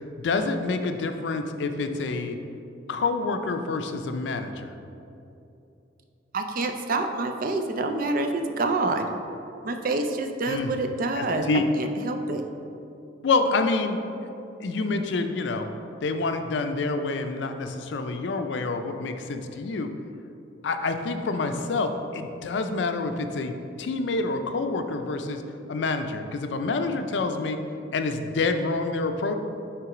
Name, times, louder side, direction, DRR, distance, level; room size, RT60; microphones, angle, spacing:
voice 1, 0.2-2.4 2.9-4.7 10.5-10.7 11.1-11.7 13.2-14.0 14.6-15.7 16.0-19.9 20.6-25.4 25.7-27.6 27.9-29.3, left 3 dB, 80° left, 7 dB, 0.4 m, -27 dB
voice 2, 6.3-9.1 9.6-11.4 11.8-12.4, right 2 dB, 50° right, 6 dB, 0.4 m, -27 dB
6.0 x 3.4 x 4.8 m, 2.8 s
head